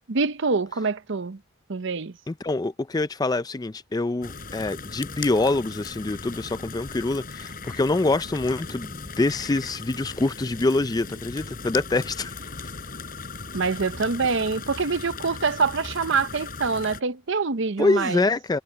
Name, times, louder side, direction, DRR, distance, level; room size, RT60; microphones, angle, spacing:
voice 1, 0.1-1.4 1.7-2.1 13.5-18.3, right 4 dB, 60° right, 0.7 m, -25 dB
voice 2, 2.3-12.3 17.8-18.6, left 2 dB, 20° left, 0.4 m, -25 dB
sound 1, 4.2-17.0, left 4 dB, 45° left, 4.4 m, -38 dB
head